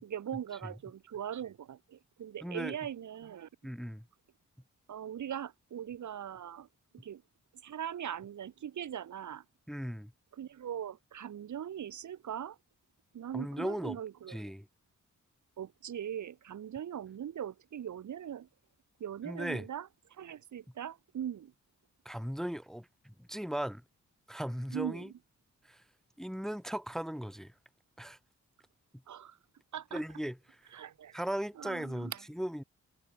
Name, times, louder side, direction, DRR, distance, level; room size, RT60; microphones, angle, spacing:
voice 1, 0.0-3.5 4.9-6.7 6.9-7.2 7.6-9.4 10.3-12.6 13.1-14.4 15.6-18.5 19.0-19.9 20.2-21.5 24.7-25.0 29.1-29.4 29.7-30.0 30.7-31.2 31.6-32.2, right 9 dB, 70° right, 1.2 m, -40 dB
voice 2, 2.4-2.8 3.6-4.1 9.7-10.1 13.3-14.0 14.3-14.7 19.2-19.7 22.0-23.8 24.3-25.1 25.6-25.8 26.2-27.5 28.0-28.2 29.9-30.7 31.1-32.6, equal, ahead, 0.8 m, -37 dB
wide cardioid pair, 100°, 30 cm